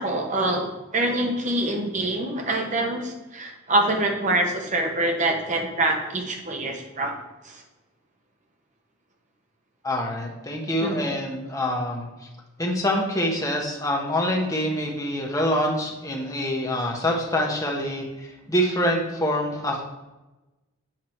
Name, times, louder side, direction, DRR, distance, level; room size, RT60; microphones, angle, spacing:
voice 1, 0.0-7.1 7.4-7.6 10.8-11.1 16.8-16.9, right 1 dB, 35° right, 2 dB, 1.0 m, -25 dB
voice 2, 9.8-12.1 12.6-19.8, equal, 15° left, 0 dB, 1.0 m, -25 dB
7.6 x 4.7 x 4.5 m, 1.1 s
head